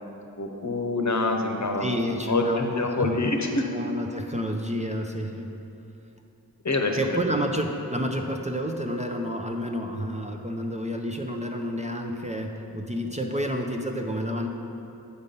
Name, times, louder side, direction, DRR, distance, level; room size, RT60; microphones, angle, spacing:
voice 1, 0.4-1.9 2.3-3.7 6.6-7.2, left 2 dB, 50° left, 3 dB, 0.9 m, -26 dB
voice 2, 1.8-3.2 3.7-5.5 6.9-14.5, equal, 20° right, 2 dB, 0.6 m, -29 dB
8.2 x 5.2 x 5.4 m, 2.8 s
wide cardioid pair, 65°, 37 cm